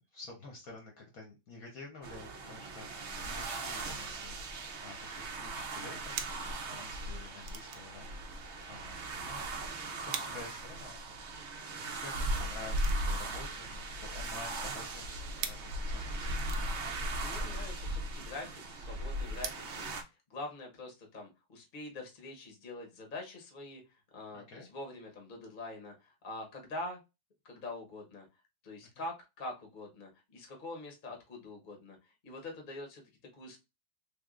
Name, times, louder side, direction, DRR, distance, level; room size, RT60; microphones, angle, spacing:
voice 1, 0.1-6.4 6.7-8.1 8.7-11.0 11.7-16.5 24.3-24.7 29.0-29.1, left 3 dB, 60° left, 1 dB, 1.0 m, -50 dB
sound 1, 2.0-20.0, right 1 dB, 90° right, 0.6 m, -38 dB
sound 2, 6.2-19.6, right 8 dB, 70° right, 1.0 m, -46 dB
voice 2, 17.2-20.0 20.3-23.8 24.1-27.0 27.4-28.2 28.6-33.0 33.3-33.6, left 2 dB, 40° left, 2 dB, 0.8 m, -44 dB
3.5 x 3.4 x 2.4 m, 0.25 s
omnidirectional pair, 2.2 m